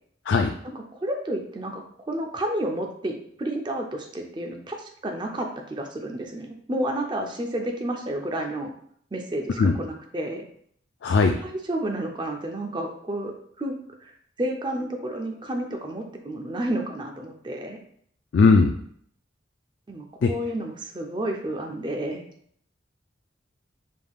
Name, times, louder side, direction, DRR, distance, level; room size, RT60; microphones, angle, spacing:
voice 1, 0.6-8.7 9.1-10.4 11.4-13.3 13.6-14.1 14.4-17.8 19.9-22.2, right 1 dB, 25° right, 2 dB, 0.5 m, -31 dB
voice 2, 11.0-11.3 18.3-18.7 20.2-20.3, left 4 dB, 70° left, 4 dB, 0.3 m, -18 dB
5.1 x 3.5 x 2.3 m, 0.65 s
head